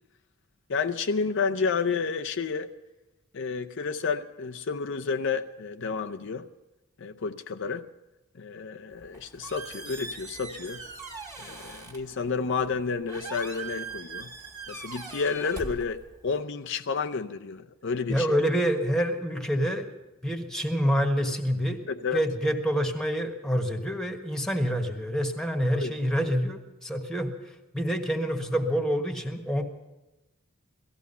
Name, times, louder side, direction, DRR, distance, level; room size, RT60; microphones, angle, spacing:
voice 1, 0.7-2.7 3.3-6.5 7.0-7.8 8.3-10.8 11.4-14.3 14.7-18.5 21.9-22.2 25.7-25.9, left 5 dB, 60° left, 6 dB, 0.6 m, -30 dB
Squeak, 8.9-16.4, right 4 dB, 20° right, 2.0 m, -42 dB
voice 2, 18.1-19.9 20.2-21.8 22.1-27.3 27.7-29.6, equal, 5° left, 5 dB, 1.4 m, -27 dB
18.0 x 14.5 x 5.5 m, 1.0 s
head